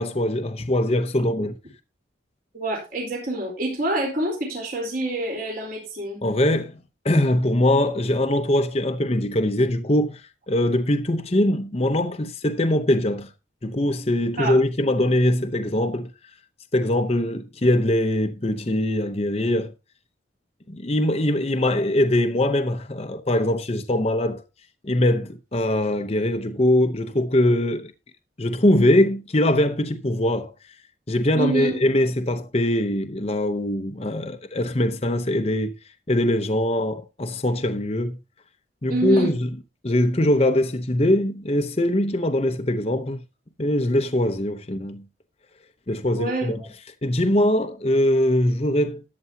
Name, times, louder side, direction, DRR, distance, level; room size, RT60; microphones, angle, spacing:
voice 1, 0.0-1.5 6.2-10.2 10.5-13.3 13.6-16.1 16.7-19.7 20.7-24.4 24.8-27.9 28.4-30.5 31.1-35.7 36.1-38.2 38.8-39.5 39.8-43.2 43.6-45.0 45.9-46.6 47.0-49.0, left 1 dB, 30° left, 0.8 m, -22 dB
voice 2, 2.5-6.2 14.4-14.6 31.3-31.7 38.9-39.3 46.1-46.7, right 2 dB, 50° right, 4.0 m, -26 dB
13.5 x 8.7 x 2.8 m
head